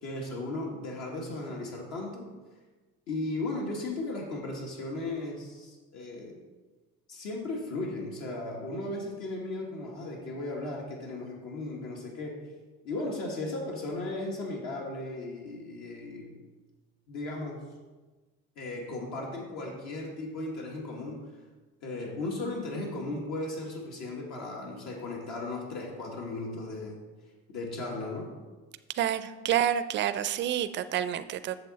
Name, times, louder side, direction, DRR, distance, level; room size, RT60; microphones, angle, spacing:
voice 1, 0.0-2.3 3.1-6.4 7.1-12.4 12.8-16.3 17.1-17.6 18.6-21.2 21.8-27.0 27.5-28.3, left 2 dB, 65° left, -1 dB, 1.7 m, -36 dB
voice 2, 28.9-31.6, right 10 dB, 40° right, 12 dB, 0.5 m, -28 dB
7.8 x 6.8 x 4.1 m, 1.3 s
cardioid pair, 120°, 29 cm